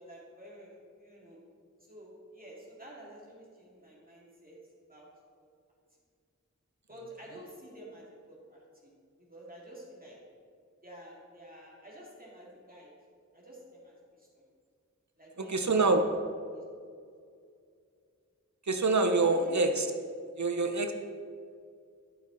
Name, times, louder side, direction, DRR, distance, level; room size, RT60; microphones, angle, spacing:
voice 1, 0.0-1.4 1.9-4.6 4.9-5.1 6.9-8.9 9.2-10.2 10.8-12.9 13.3-14.4 15.2-16.1 16.5-16.9 19.3-19.6, right 1 dB, 30° right, -5 dB, 2.5 m, -50 dB
voice 2, 15.5-16.0 18.6-19.9 20.4-20.9, right 3 dB, 65° right, 6 dB, 0.7 m, -25 dB
12.0 x 6.6 x 4.0 m, 2.2 s
wide cardioid pair, 45°, 30 cm